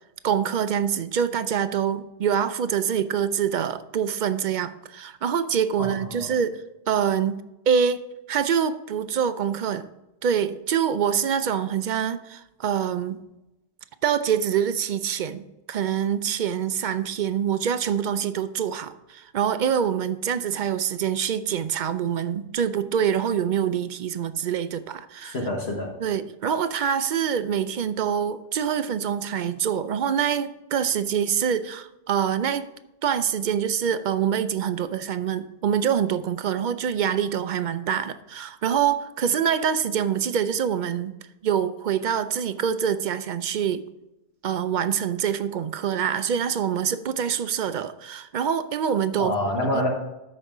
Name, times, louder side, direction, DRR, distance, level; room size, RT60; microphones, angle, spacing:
voice 1, 0.2-7.4 7.7-8.0 8.3-9.9 10.2-13.2 14.0-25.4 26.0-32.7 33.0-41.1 41.4-43.9 44.4-49.3 49.7-49.8, right 8 dB, 55° right, 12 dB, 0.5 m, -25 dB
voice 2, 5.8-6.3 25.3-25.9 49.2-49.9, left 1 dB, 65° left, 0 dB, 1.6 m, -27 dB
13.0 x 5.4 x 3.7 m, 0.96 s
omnidirectional pair, 1.2 m